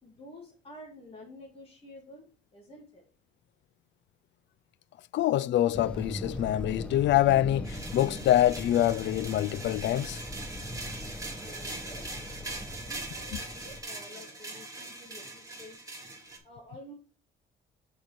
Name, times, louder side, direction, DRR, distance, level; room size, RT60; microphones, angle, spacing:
voice 1, 0.0-3.0 11.4-12.1 12.4-15.9 16.4-16.9, left 1 dB, 30° left, 2.5 m, -50 dB
voice 2, 5.1-10.2, left 13 dB, 65° left, 0.4 m, -25 dB
sound 1, 5.7-13.8, left 1 dB, 5° left, 1.0 m, -40 dB
sound 2, 7.6-16.4, right 2 dB, 15° right, 2.9 m, -42 dB
6.6 x 4.9 x 5.9 m
cardioid pair, 90°, 20 cm